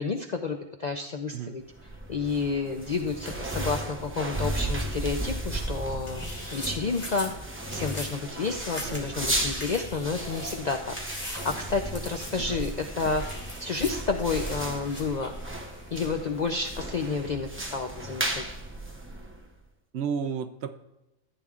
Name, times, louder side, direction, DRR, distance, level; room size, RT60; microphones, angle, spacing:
voice 1, 0.0-1.6 2.1-6.2 6.5-7.3 7.7-13.2 13.6-15.3 15.9-18.4, left 4 dB, 60° left, 4 dB, 0.4 m, -30 dB
sound 1, 1.7-19.6, right 1 dB, 15° right, 0.6 m, -35 dB
sound 2, 6.0-7.3 7.7-8.1 8.4-9.1 9.4-10.6 10.9-11.6 11.9-12.3 12.6-16.1, left 1 dB, 25° left, 2.5 m, -41 dB
voice 2, 19.9-20.8, right 7 dB, 65° right, 10 dB, 0.7 m, -33 dB
14.5 x 8.8 x 2.4 m, 0.95 s
omnidirectional pair, 1.3 m